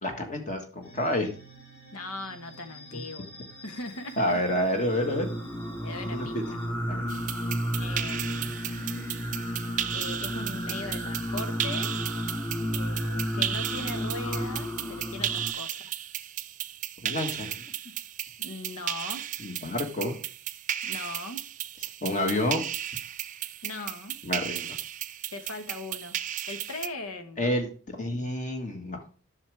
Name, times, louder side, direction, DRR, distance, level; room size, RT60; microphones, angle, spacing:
voice 1, 0.0-1.3 2.9-3.0 4.2-5.3 6.1-6.4 6.9-7.1 17.0-17.6 19.4-20.1 22.0-22.7 24.2-24.8 27.4-29.0, left 1 dB, 35° left, 4 dB, 1.5 m, -29 dB
sound 1, 0.8-6.7, equal, 65° left, 3.9 m, -49 dB
voice 2, 1.9-3.3 3.6-4.6 5.8-6.6 7.7-8.9 9.9-11.9 12.7-15.9 18.4-19.3 20.8-21.4 23.6-24.2 25.3-26.2 26.5-27.5, left 2 dB, 90° left, 8 dB, 1.2 m, -39 dB
Singing, 4.8-15.5, equal, 10° left, 0.8 m, -32 dB
sound 2, 7.1-26.9, right 11 dB, 35° right, 0.3 m, -35 dB
9.9 x 6.3 x 3.3 m, 0.39 s
head